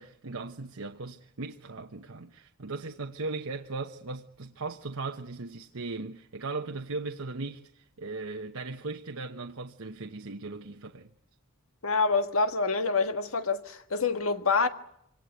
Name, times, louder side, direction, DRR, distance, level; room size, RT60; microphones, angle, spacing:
voice 1, 0.0-11.1, right 3 dB, 75° right, 1.1 m, -38 dB
voice 2, 11.8-14.7, left 4 dB, 75° left, 1.7 m, -26 dB
25.5 x 18.0 x 9.5 m
head